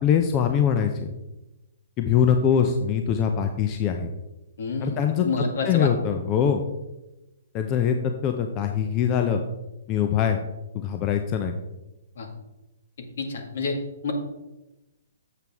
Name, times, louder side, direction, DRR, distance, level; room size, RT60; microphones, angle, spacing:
voice 1, 0.0-1.1 2.0-4.1 4.8-5.3 5.6-6.6 7.5-9.4 9.9-10.4 10.7-11.6, left 8 dB, 30° left, 5 dB, 0.7 m, -23 dB
voice 2, 4.6-5.9 12.2-12.3 13.0-13.8 14.0-14.1, left 4 dB, 65° left, 4 dB, 1.9 m, -29 dB
7.9 x 7.6 x 3.5 m, 0.99 s
hypercardioid pair, 130°, 0 cm